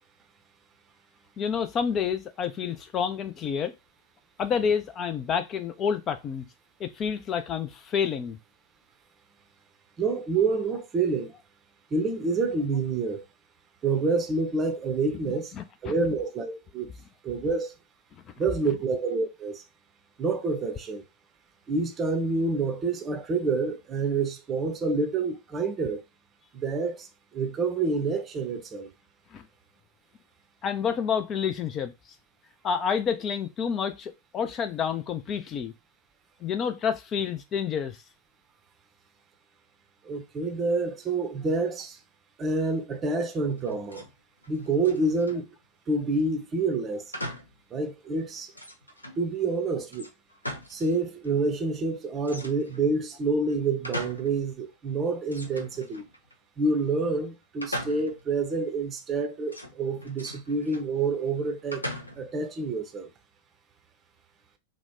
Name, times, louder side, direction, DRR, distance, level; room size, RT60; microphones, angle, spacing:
voice 1, 1.4-3.7 4.4-6.4 6.8-8.4 15.6-15.9 29.3-29.4 30.6-31.9 32.6-35.7 36.4-38.0, left 7 dB, 30° left, 0.3 m, -29 dB
voice 2, 10.0-11.3 11.9-13.2 13.8-15.5 15.8-16.9 17.2-17.7 18.4-19.6 20.2-21.0 21.7-26.0 26.5-27.1 27.3-28.9 40.0-42.0 42.4-44.0 44.5-45.5 45.9-47.0 47.7-48.5 49.2-50.1 50.7-56.0 56.6-61.8 62.2-63.1, right 3 dB, 25° right, 0.6 m, -28 dB
sound 1, 43.6-44.1 44.4-45.5 47.1-47.6 48.0-48.1 48.5-49.2 49.9-51.0 51.2-51.3 52.2-52.9 53.4-54.4 54.7-54.8 55.3-56.3 57.6-58.3 59.5-60.9 61.7-62.4, equal, 85° left, 0.5 m, -39 dB
2.9 x 2.1 x 3.5 m
figure-of-eight pair, 90°, 0 cm